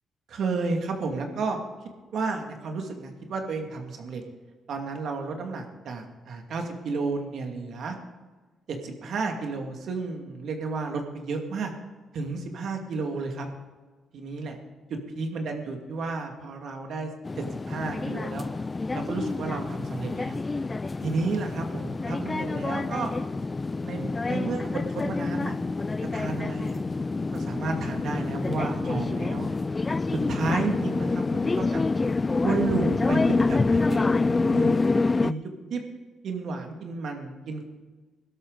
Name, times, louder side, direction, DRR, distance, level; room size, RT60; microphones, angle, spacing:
voice 1, 0.3-1.6 2.1-4.2 4.7-8.0 8.7-11.7 12.1-13.5 14.1-14.6 14.9-18.5 18.9-20.4 21.0-23.1 23.8-25.6 26.1-26.8 27.3-29.5 30.1-31.8 32.4-34.7 35.2-35.8 36.2-37.6, right 4 dB, 65° right, 3 dB, 2.2 m, -32 dB
sound 1, 17.2-35.3, left 3 dB, 25° left, 0.3 m, -27 dB
17.0 x 12.5 x 4.0 m, 1.3 s
cardioid pair, 90°, 0 cm